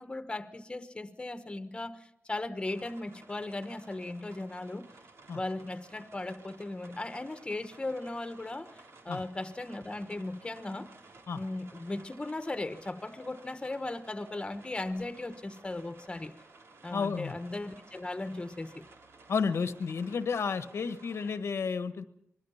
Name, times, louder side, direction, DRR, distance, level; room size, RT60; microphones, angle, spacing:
voice 1, 0.0-4.9 5.3-10.9 11.3-16.3 16.8-18.8, left 2 dB, 20° left, 10 dB, 1.2 m, -37 dB
sound 1, 2.6-21.4, right 3 dB, 80° right, 3.2 m, -56 dB
voice 2, 16.9-17.3 19.3-22.0, left 5 dB, 90° left, 11 dB, 1.2 m, -31 dB
25.5 x 21.5 x 5.7 m, 0.74 s
wide cardioid pair, 140°, 4 cm